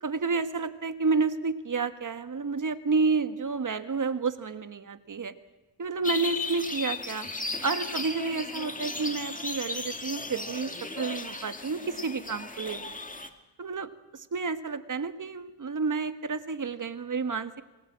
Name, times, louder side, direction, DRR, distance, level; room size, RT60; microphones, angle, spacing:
voice 1, 0.0-5.3 5.8-7.3 7.6-10.7 11.0-13.0 13.6-17.6, right 4 dB, 45° right, 10 dB, 1.7 m, -30 dB
sound 1, 6.0-13.3, left 3 dB, 20° left, 2.2 m, -36 dB
27.5 x 21.0 x 7.6 m, 1.1 s
cardioid pair, 95°, 44 cm